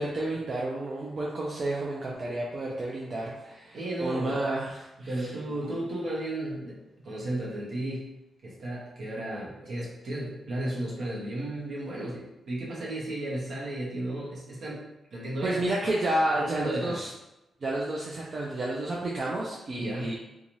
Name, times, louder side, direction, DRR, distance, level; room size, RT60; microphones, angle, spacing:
voice 1, 0.0-5.3 5.6-5.8 15.4-17.1 17.6-20.1, right 1 dB, 35° right, -4 dB, 0.4 m, -31 dB
voice 2, 3.7-4.4 5.0-8.1 8.4-15.7 16.3-17.0 19.8-20.1, right 1 dB, 55° right, -5 dB, 0.9 m, -34 dB
2.6 x 2.3 x 3.0 m, 0.93 s
wide cardioid pair, 170°, 0 cm